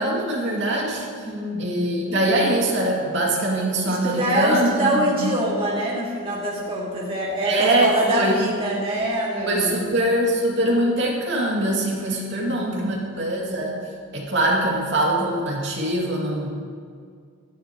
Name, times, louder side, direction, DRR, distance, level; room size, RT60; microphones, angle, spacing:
voice 1, 0.0-1.3 1.6-5.3 7.4-8.4 9.5-13.7 14.1-16.5, right 1 dB, 55° right, -3 dB, 2.6 m, -23 dB
voice 2, 1.3-2.2 3.8-9.8 12.1-13.1, right 1 dB, 25° right, -6 dB, 2.2 m, -25 dB
17.5 x 13.5 x 3.1 m, 2.2 s
head